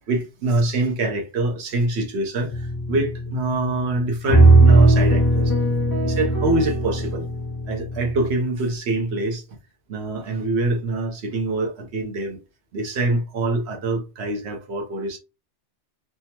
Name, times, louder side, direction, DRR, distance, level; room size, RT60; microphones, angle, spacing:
voice 1, 0.0-5.5 6.0-7.3 7.7-9.4 9.9-12.4 12.7-15.2, right 2 dB, 65° right, 1.0 m, -25 dB
sound 1, 2.5-3.4 4.3-8.3, right 2 dB, 20° left, 0.8 m, -17 dB
3.4 x 2.1 x 2.8 m
omnidirectional pair, 1.2 m